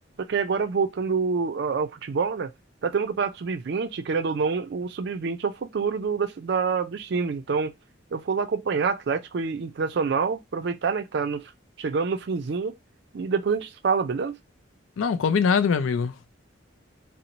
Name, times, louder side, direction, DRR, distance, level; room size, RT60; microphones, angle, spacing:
voice 1, 0.2-2.5 2.8-7.7 8.1-11.5 11.8-12.8 13.1-14.4, right 5 dB, 60° right, 0.4 m, -27 dB
voice 2, 15.0-16.3, left 6 dB, 85° left, 0.4 m, -23 dB
2.5 x 2.0 x 2.9 m
head